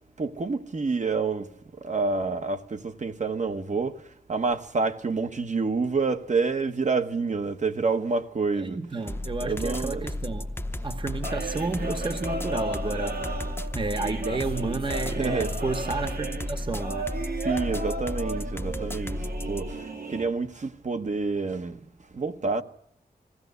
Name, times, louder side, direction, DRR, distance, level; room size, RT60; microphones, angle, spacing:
voice 1, 0.2-1.5 1.8-4.0 4.3-8.8 9.4-10.0 15.1-15.6 17.4-19.2 19.5-21.8 22.1-22.6, right 4 dB, 50° right, 1.2 m, -28 dB
voice 2, 8.5-13.5 13.7-17.3, right 3 dB, 30° right, 1.0 m, -32 dB
sound 1, 9.1-19.7, left 1 dB, 15° left, 0.8 m, -33 dB
sound 2, 11.2-20.3, right 2 dB, 70° right, 2.7 m, -35 dB
21.0 x 16.0 x 8.1 m
wide cardioid pair, 115°, 16 cm